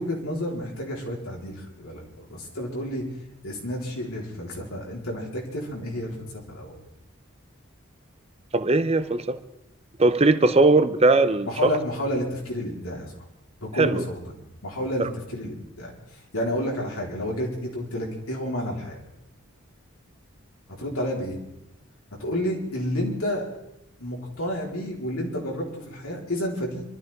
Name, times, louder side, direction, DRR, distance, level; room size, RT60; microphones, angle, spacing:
voice 1, 0.0-3.1 3.4-6.8 11.4-13.1 13.6-14.3 14.6-19.0 20.8-21.4 22.2-23.5 24.0-26.8, equal, 85° left, -2 dB, 4.3 m, -30 dB
voice 2, 8.5-9.4 10.0-11.5 13.8-14.0 15.0-15.1, right 3 dB, 30° right, 11 dB, 0.7 m, -19 dB
25.0 x 13.5 x 3.7 m, 0.85 s
head